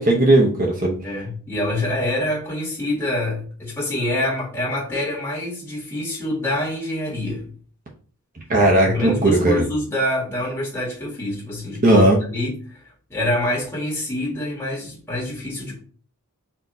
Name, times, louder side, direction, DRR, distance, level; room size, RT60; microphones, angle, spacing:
voice 1, 0.0-1.0 8.5-9.6 11.8-12.2, right 1 dB, 40° right, 0.9 m, -16 dB
voice 2, 1.0-7.5 8.8-12.8 13.1-15.8, left 1 dB, 10° left, 1.8 m, -26 dB
4.5 x 2.9 x 3.9 m
head